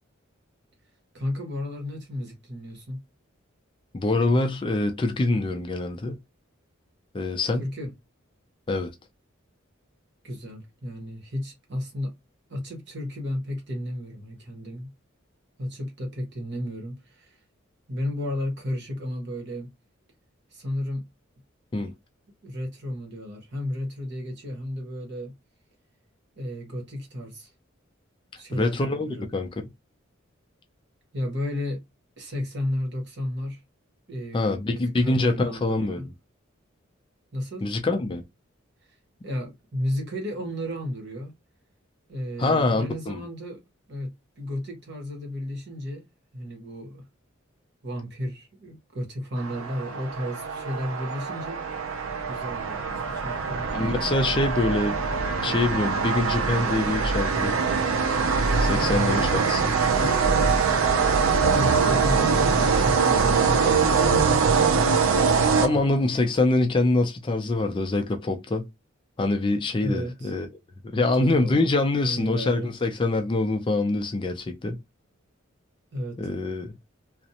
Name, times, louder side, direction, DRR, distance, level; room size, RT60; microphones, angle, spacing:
voice 1, 1.1-3.0 7.6-7.9 10.2-12.1 12.5-14.9 15.6-17.4 17.9-19.7 20.5-21.1 22.4-25.3 26.4-27.5 28.4-29.3 31.1-31.8 32.2-33.6 34.1-36.1 37.3-37.7 38.8-38.9 39.2-41.3 42.1-43.6 43.9-46.0 46.3-47.0 47.8-51.6 52.3-53.7 58.7-58.9 59.9-60.6 61.3-64.4 69.7-70.3 71.0-71.7 72.0-72.7 75.9-76.2, left 1 dB, 55° right, 1.0 m, -33 dB
voice 2, 3.9-6.2 7.1-7.6 8.7-8.9 21.7-21.9 28.5-29.5 34.3-36.0 37.6-38.2 42.4-43.2 53.7-55.0 55.4-57.6 58.6-59.7 63.6-63.8 65.2-65.3 65.6-68.6 69.2-70.5 70.9-74.8 76.2-76.7, left 2 dB, 25° left, 0.3 m, -25 dB
sound 1, 49.4-66.2, right 5 dB, 75° right, 0.4 m, -23 dB
2.5 x 2.0 x 2.8 m
head